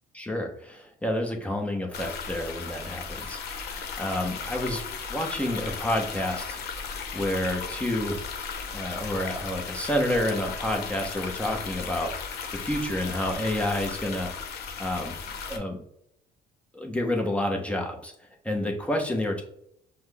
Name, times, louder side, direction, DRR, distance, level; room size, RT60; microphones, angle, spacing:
voice 1, 0.1-4.8 5.1-8.2 8.7-12.3 12.6-14.3 14.8-15.2 15.5-15.8 16.7-18.1 18.4-19.4, left 1 dB, 5° left, 2 dB, 0.9 m, -29 dB
sound 1, 1.9-15.6, left 5 dB, 75° left, 0.8 m, -36 dB
5.6 x 2.2 x 3.4 m, 0.72 s
cardioid pair, 110°, 17 cm